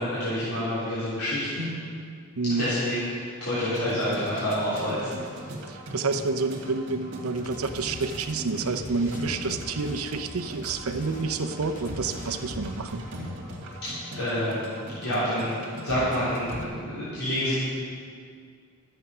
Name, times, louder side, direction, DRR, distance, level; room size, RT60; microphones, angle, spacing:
voice 1, 0.0-1.7 2.6-5.1 14.1-15.5 15.8-17.6, equal, 90° left, -12 dB, 3.3 m, -28 dB
voice 2, 2.4-2.7 5.7-13.0, right 3 dB, 75° right, 8 dB, 0.7 m, -29 dB
sound 1, 3.6-16.7, right 1 dB, 55° right, 1.8 m, -39 dB
sound 2, 7.3-12.9, left 2 dB, 35° left, 0.8 m, -45 dB
12.5 x 7.9 x 5.5 m, 2.2 s
head